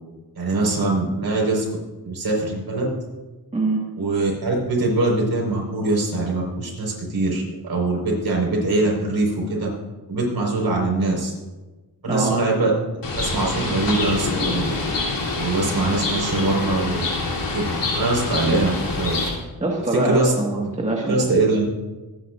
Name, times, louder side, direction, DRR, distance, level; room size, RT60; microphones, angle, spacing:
voice 1, 0.3-1.6 2.0-2.8 4.0-9.7 10.1-11.3 12.0-12.7 13.2-14.7 15.3-17.1 17.5-19.2 19.9-20.7 21.1-21.6, right 2 dB, 60° right, -1 dB, 4.9 m, -22 dB
voice 2, 3.5-3.8 12.1-12.4 18.0-18.1 19.6-21.2, right 2 dB, 15° right, -2 dB, 1.8 m, -23 dB
Bird, 13.0-19.3, left 3 dB, 80° left, 3.4 m, -26 dB
25.0 x 10.0 x 2.6 m, 1.2 s
cardioid pair, 90°, 42 cm